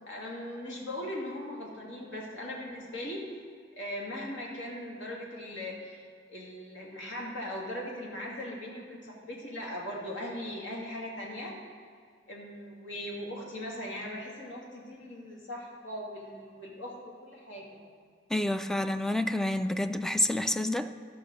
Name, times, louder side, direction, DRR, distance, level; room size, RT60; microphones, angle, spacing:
voice 1, 0.1-3.2 3.8-6.0 6.3-11.5 12.3-17.8, left 1 dB, 70° left, -2 dB, 2.5 m, -39 dB
voice 2, 18.3-20.9, left 1 dB, 5° left, 9 dB, 0.3 m, -28 dB
13.0 x 5.7 x 6.5 m, 2.1 s
head